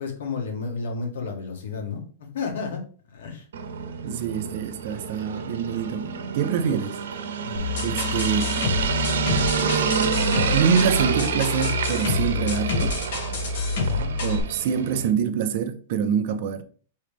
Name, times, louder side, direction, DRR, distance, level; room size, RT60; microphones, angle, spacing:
voice 1, 0.0-2.8 3.1-3.4 7.4-7.7 13.8-14.1, left 5 dB, 80° left, 1.5 m, -32 dB
sound 1, 3.5-15.1, right 6 dB, 90° right, 0.7 m, -28 dB
voice 2, 4.0-7.0 7.8-8.5 10.5-13.0 14.2-16.6, right 7 dB, 45° right, 0.5 m, -25 dB
sound 2, 7.5-14.4, left 4 dB, 60° left, 1.7 m, -27 dB
4.8 x 3.1 x 3.5 m
supercardioid pair, 165°, 0 cm